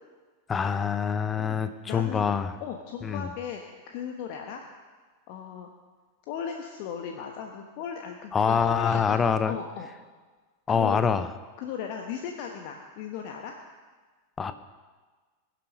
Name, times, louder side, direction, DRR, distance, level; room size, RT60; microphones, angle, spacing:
voice 1, 0.5-2.5 3.0-3.3 8.3-9.5 10.7-11.3 14.4-14.5, left 6 dB, 20° left, 11 dB, 0.8 m, -25 dB
voice 2, 1.4-2.3 2.6-3.6 3.9-4.6 5.3-5.7 6.3-9.2 9.4-9.9 10.7-11.0 11.6-13.5, left 8 dB, 45° left, 3 dB, 1.2 m, -37 dB
21.0 x 7.8 x 5.3 m, 1.4 s
figure-of-eight pair, 90°, 0 cm